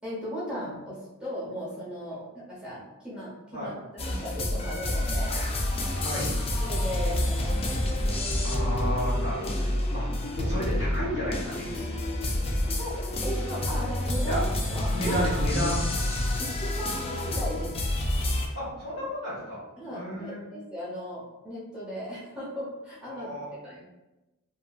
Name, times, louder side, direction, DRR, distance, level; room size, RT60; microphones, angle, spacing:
voice 1, 0.0-5.5 6.6-7.7 12.6-12.9 13.2-15.2 16.4-17.9 19.8-23.3 23.6-23.8, equal, 5° right, -8 dB, 0.7 m, -37 dB
sound 1, 4.0-18.5, left 1 dB, 30° left, 0.3 m, -28 dB
voice 2, 6.0-6.4 8.4-10.0 10.3-11.8 14.3-14.4 14.9-15.8 18.5-19.6 19.9-20.4 23.1-23.5, equal, 70° left, -7 dB, 1.3 m, -32 dB
2.8 x 2.6 x 2.3 m, 1.0 s
head